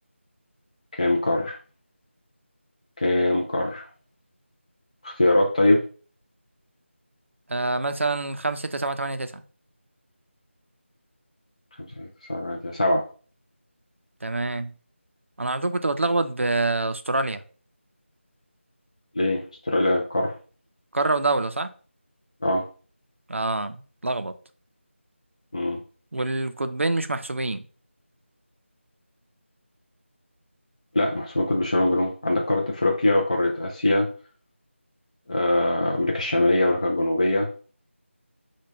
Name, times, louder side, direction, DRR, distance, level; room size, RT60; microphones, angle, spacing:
voice 1, 0.9-1.6 3.0-3.9 5.0-5.8 12.0-13.0 19.2-20.4 22.4-22.7 25.5-25.8 30.9-34.1 35.3-37.5, left 1 dB, 35° left, 0.3 m, -22 dB
voice 2, 7.5-9.4 14.2-14.7 15.4-17.4 20.9-21.7 23.3-24.3 26.1-27.6, right 2 dB, 70° right, 0.4 m, -26 dB
3.2 x 2.1 x 3.2 m
figure-of-eight pair, 165°, 7 cm